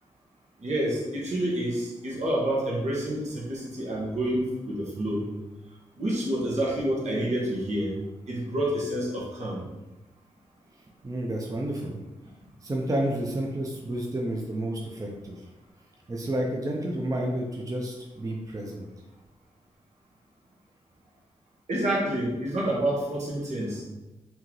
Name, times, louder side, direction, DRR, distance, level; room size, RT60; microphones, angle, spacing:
voice 1, 0.6-5.3 6.0-8.0 8.3-9.6 21.7-23.8, right 1 dB, 70° right, -4 dB, 1.2 m, -28 dB
voice 2, 11.0-12.0 12.3-12.4 12.6-15.3 16.1-18.9, right 1 dB, 30° right, 0 dB, 0.6 m, -30 dB
3.7 x 2.8 x 3.1 m, 1.0 s
cardioid pair, 60°, 12 cm